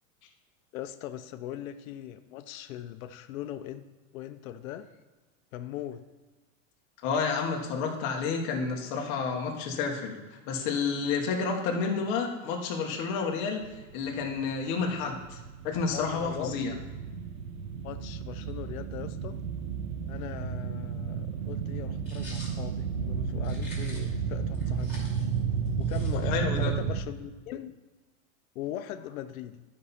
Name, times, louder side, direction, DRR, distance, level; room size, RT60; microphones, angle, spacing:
voice 1, 0.7-3.8 4.1-4.9 5.5-6.0 15.9-16.6 17.8-19.4 20.1-25.0 25.8-27.7 28.5-29.6, left 12 dB, 90° left, 9 dB, 0.7 m, -40 dB
voice 2, 7.0-13.6 13.9-15.4 15.6-16.7 26.3-26.7, left 5 dB, 35° left, 1 dB, 1.2 m, -30 dB
sound 1, 13.6-27.0, right 7 dB, 85° right, 1.0 m, -33 dB
sound 2, 22.1-22.6 23.4-24.2 24.5-26.5, left 1 dB, 5° right, 2.5 m, -47 dB
12.0 x 5.6 x 4.2 m, 1.2 s
supercardioid pair, 180°, 41 cm